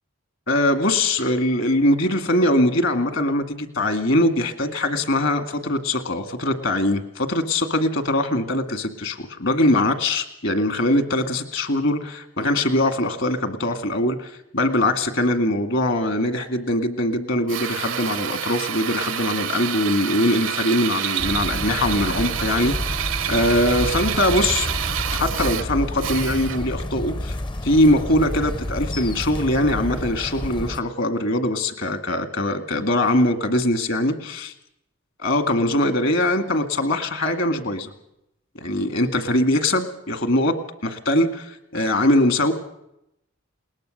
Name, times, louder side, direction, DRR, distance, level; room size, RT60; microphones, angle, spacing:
voice 1, 0.5-24.7 25.1-27.4 27.6-34.4 35.2-37.9 38.6-40.5 40.8-42.5, left 1 dB, 60° left, 8 dB, 2.0 m, -22 dB
Drill, 17.5-26.8, right 10 dB, 65° right, 0.8 m, -28 dB
sound 1, 21.2-30.8, left 1 dB, 20° left, 0.6 m, -30 dB
21.0 x 19.0 x 6.5 m, 0.82 s
head